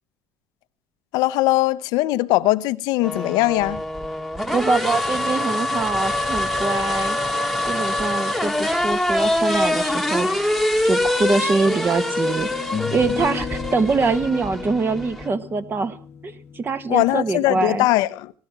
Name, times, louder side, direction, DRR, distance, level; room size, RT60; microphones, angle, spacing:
voice 1, 1.1-3.8 16.9-18.3, left 18 dB, 80° left, 0.8 m, -20 dB
sound 1, 3.0-15.3, left 1 dB, ahead, 1.6 m, -24 dB
voice 2, 4.5-7.2 7.7-10.3 10.8-12.5 12.9-16.0 16.2-17.9, right 4 dB, 30° right, 1.5 m, -23 dB
sound 2, 12.5-17.8, left 8 dB, 35° left, 0.9 m, -34 dB
18.0 x 13.0 x 6.0 m
supercardioid pair, 100°, 7 cm